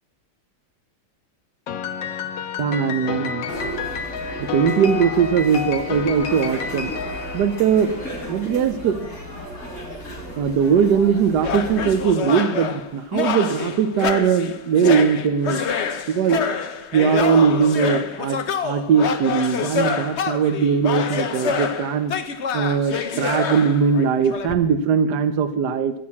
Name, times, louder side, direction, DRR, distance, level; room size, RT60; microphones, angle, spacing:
Piano, 1.7-8.2, left 6 dB, 75° left, 1.6 m, -30 dB
voice 1, 2.6-3.5 4.4-6.9 7.3-7.9 8.3-9.1 10.4-15.6 16.1-16.4 16.9-22.1 22.5-25.9, right 7 dB, 65° right, 9 dB, 1.3 m, -20 dB
sound 1, 3.5-12.1, equal, 35° left, 4.1 m, -34 dB
sound 2, 11.4-24.5, left 6 dB, 50° left, 0.8 m, -26 dB
14.5 x 6.3 x 8.5 m, 0.78 s
omnidirectional pair, 2.1 m